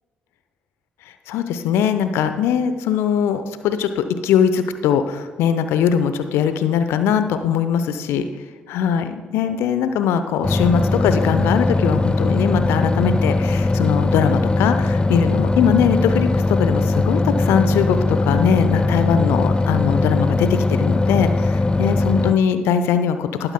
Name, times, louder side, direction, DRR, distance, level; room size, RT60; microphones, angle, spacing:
voice 1, 1.3-8.3 8.7-23.5, left 8 dB, 65° left, 10 dB, 0.8 m, -21 dB
sound 1, 10.4-22.3, left 2 dB, 20° left, 0.6 m, -19 dB
19.0 x 8.9 x 2.2 m, 1.5 s
figure-of-eight pair, 40°, 5 cm